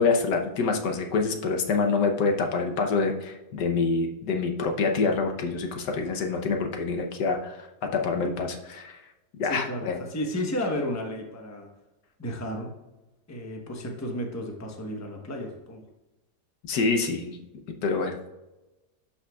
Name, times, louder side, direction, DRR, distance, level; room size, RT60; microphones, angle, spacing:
voice 1, 0.0-7.7 7.9-9.0 9.4-10.0 16.7-17.4 17.8-18.3, left 4 dB, 90° left, 3 dB, 1.5 m, -26 dB
voice 2, 9.4-11.7 12.2-12.7 13.3-15.8, left 1 dB, 15° left, 2 dB, 0.8 m, -33 dB
11.5 x 5.6 x 2.3 m, 1.0 s
omnidirectional pair, 1.7 m